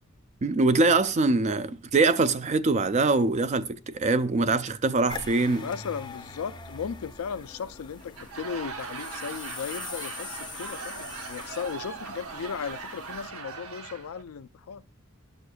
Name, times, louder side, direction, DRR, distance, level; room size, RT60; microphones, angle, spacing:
voice 1, 0.4-5.7, right 3 dB, 35° right, 0.4 m, -23 dB
sound 1, 5.1-13.3, left 4 dB, 20° left, 0.6 m, -43 dB
voice 2, 5.6-14.8, left 6 dB, 75° left, 0.4 m, -36 dB
Laughter / Crowd, 8.0-14.2, right 5 dB, 90° right, 0.8 m, -40 dB
12.0 x 6.4 x 2.3 m
head